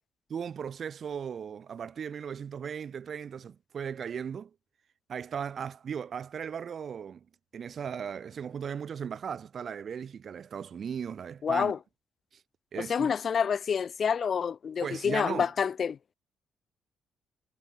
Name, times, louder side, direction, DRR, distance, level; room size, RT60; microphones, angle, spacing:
voice 1, 0.3-4.5 5.1-7.3 7.5-11.7 12.3-12.4 12.7-13.1 14.8-15.5, right 7 dB, 50° right, 0.9 m, -37 dB
voice 2, 11.4-11.8 12.8-16.0, left 7 dB, 50° left, 0.8 m, -28 dB
cardioid pair, 90°, 0 cm